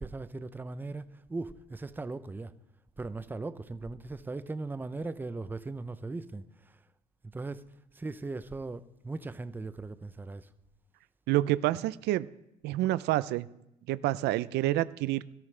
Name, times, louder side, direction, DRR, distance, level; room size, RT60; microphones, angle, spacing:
voice 1, 0.0-2.5 3.0-6.8 7.3-7.7 7.9-10.5, right 3 dB, 10° right, 0.5 m, -38 dB
voice 2, 11.3-12.3 12.6-13.5 13.9-15.2, right 15 dB, 80° right, 0.5 m, -28 dB
17.0 x 13.5 x 3.3 m
cardioid pair, 110°, 17 cm